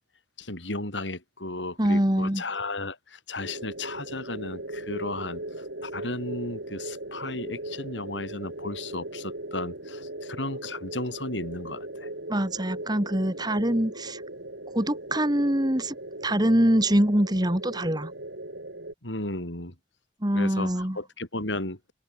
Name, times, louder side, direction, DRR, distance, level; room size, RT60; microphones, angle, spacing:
voice 1, 0.4-12.1 19.0-19.7 20.4-21.8, left 2 dB, 85° left, 7.1 m, -34 dB
voice 2, 1.8-2.4 12.3-14.2 14.7-16.0 16.2-18.1 20.2-21.0, right 1 dB, 20° right, 2.5 m, -24 dB
sound 1, 3.4-18.9, right 1 dB, 85° right, 7.9 m, -38 dB
head